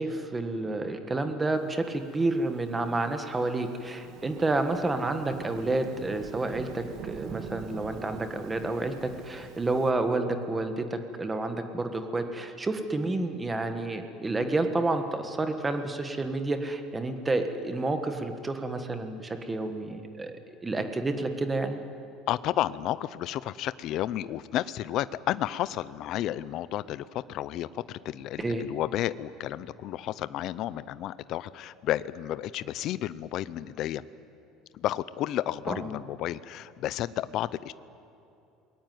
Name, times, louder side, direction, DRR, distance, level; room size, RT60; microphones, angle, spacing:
voice 1, 0.0-21.8 28.4-28.6 35.7-35.9, right 2 dB, 10° right, 7 dB, 1.4 m, -30 dB
Thunderstorm / Rain, 2.2-9.9, right 7 dB, 45° right, 1.8 m, -45 dB
voice 2, 22.3-34.0 34.7-37.7, left 13 dB, 40° left, 16 dB, 0.6 m, -32 dB
27.5 x 21.0 x 9.4 m, 2.7 s
cardioid pair, 180°, 0 cm